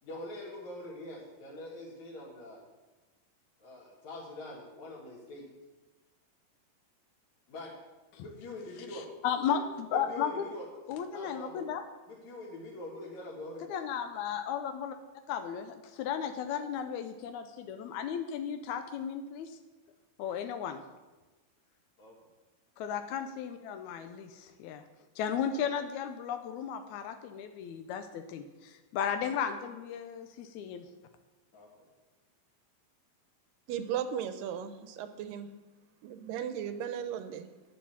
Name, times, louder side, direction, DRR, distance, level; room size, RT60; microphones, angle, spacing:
voice 1, 0.0-2.6 3.6-5.5 7.5-7.7 8.2-9.1 10.1-10.6 11.1-11.7 12.1-13.7 22.0-22.1 31.5-31.7, left 1 dB, 55° left, -5 dB, 2.8 m, -44 dB
voice 2, 8.9-10.3 10.9-11.8 13.7-15.0 15.3-19.6 20.2-20.8 22.8-24.8 25.2-30.9, left 8 dB, 85° left, 8 dB, 1.6 m, -35 dB
voice 3, 33.7-35.5 36.0-37.5, right 9 dB, 80° right, 10 dB, 2.3 m, -36 dB
10.0 x 8.8 x 7.2 m, 1.2 s
omnidirectional pair, 4.2 m